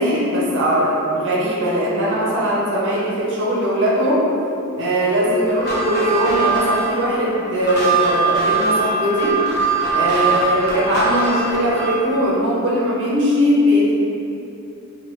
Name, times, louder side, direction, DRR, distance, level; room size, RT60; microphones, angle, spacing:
voice 1, 0.0-4.2 4.8-9.4 9.9-14.0, equal, 55° right, -5 dB, 0.6 m, -20 dB
sound 1, 5.5-12.1, right 3 dB, 45° left, 0.6 m, -21 dB
3.2 x 2.2 x 3.0 m, 2.8 s
head